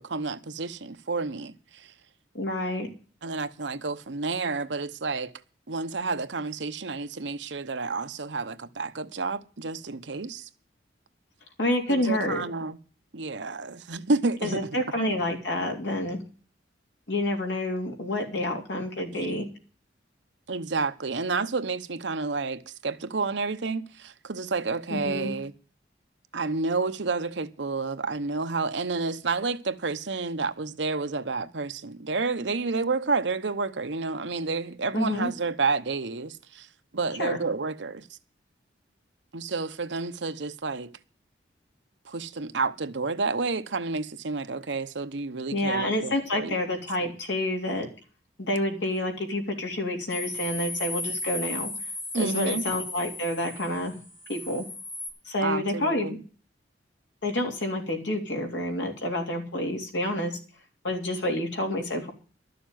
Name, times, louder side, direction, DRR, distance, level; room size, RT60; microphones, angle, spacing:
voice 1, 0.0-1.9 3.2-5.3 5.7-10.5 11.9-12.8 13.1-14.7 20.5-25.5 26.3-36.7 36.9-38.2 39.3-40.9 42.0-46.6 52.1-52.6 55.4-56.2, right 4 dB, 80° right, 0.9 m, -30 dB
voice 2, 2.3-2.9 11.6-12.4 14.4-16.2 17.1-19.5 24.9-25.3 34.9-35.3 37.2-37.4 45.5-47.9 48.4-51.7 52.1-54.0 54.3-54.7 55.2-56.2 57.2-60.4 60.8-62.1, left 1 dB, 80° left, 3.4 m, -28 dB
sound 1, 50.1-55.1, left 2 dB, 50° left, 6.6 m, -35 dB
12.5 x 6.9 x 9.2 m
head